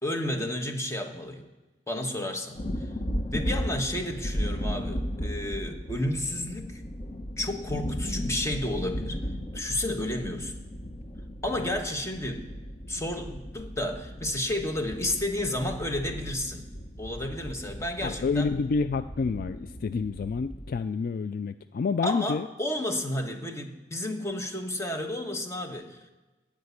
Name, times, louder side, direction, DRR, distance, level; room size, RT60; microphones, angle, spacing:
voice 1, 0.0-1.4 1.9-2.6 3.3-6.8 7.4-9.2 9.5-10.5 11.4-12.4 12.9-16.7 17.0-18.5 22.0-26.1, left 1 dB, 15° left, 4 dB, 1.3 m, -31 dB
sound 1, 2.5-20.8, equal, 35° left, 0.9 m, -36 dB
voice 2, 18.0-22.5, left 4 dB, 55° left, 12 dB, 0.3 m, -29 dB
15.0 x 5.1 x 9.6 m, 1.1 s
head